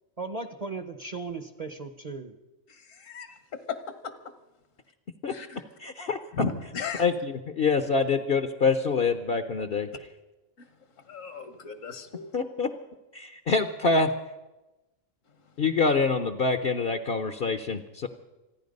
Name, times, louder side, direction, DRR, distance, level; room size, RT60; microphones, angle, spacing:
voice 1, 0.2-2.4, right 4 dB, 35° right, 9 dB, 0.8 m, -36 dB
voice 2, 5.3-5.6 6.3-7.0 11.1-12.3, left 5 dB, 70° left, 10 dB, 1.6 m, -34 dB
voice 3, 5.8-6.2 7.0-9.9 12.3-12.7 13.1-14.1 15.6-18.1, left 4 dB, 50° left, 9 dB, 0.9 m, -25 dB
27.0 x 10.0 x 5.3 m, 1.0 s
omnidirectional pair, 1.4 m